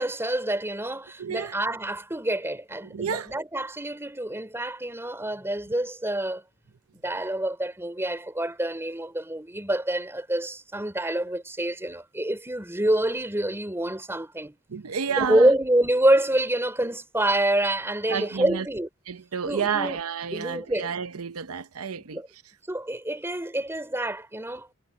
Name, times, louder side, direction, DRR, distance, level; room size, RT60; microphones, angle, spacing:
voice 1, 0.0-6.4 7.0-14.6 15.2-18.9 19.5-20.0 20.3-20.9 22.1-22.3 22.7-24.7, right 1 dB, 10° right, 3.6 m, -27 dB
voice 2, 1.2-1.6 2.8-3.3 14.7-15.5 18.1-18.7 19.1-22.2, right 6 dB, 90° right, 0.7 m, -30 dB
head